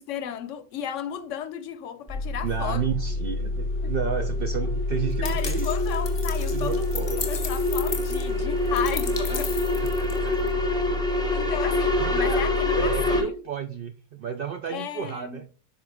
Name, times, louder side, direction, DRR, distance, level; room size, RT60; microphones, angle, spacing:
voice 1, 0.0-2.8 3.8-3.9 5.2-9.6 11.3-13.4 14.7-15.4, left 9 dB, 70° left, 0.9 m, -34 dB
sound 1, 2.1-13.2, left 2 dB, 25° right, 1.5 m, -29 dB
voice 2, 2.4-5.7 6.5-7.3 10.0-10.6 12.0-12.4 12.7-15.5, right 7 dB, 65° right, 0.5 m, -32 dB
sound 2, 2.7-13.2, left 2 dB, 5° left, 0.7 m, -28 dB
sound 3, 5.2-10.5, left 5 dB, 40° left, 0.4 m, -36 dB
7.3 x 3.8 x 3.5 m
omnidirectional pair, 1.4 m